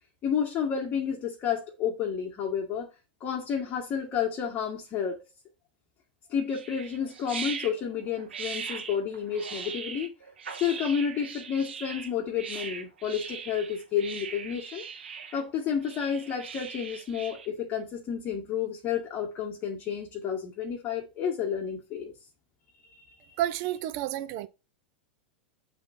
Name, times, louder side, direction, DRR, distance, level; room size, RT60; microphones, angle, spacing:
voice 1, 0.2-2.9 3.2-5.2 6.3-10.1 10.6-14.8 15.3-22.1 22.9-23.1, left 7 dB, 35° left, 1.8 m, -30 dB
sound 1, 6.5-17.5, right 6 dB, 85° right, 1.7 m, -40 dB
voice 2, 23.4-24.5, right 13 dB, 50° right, 0.8 m, -30 dB
7.4 x 3.7 x 4.4 m
hypercardioid pair, 105°, 6 cm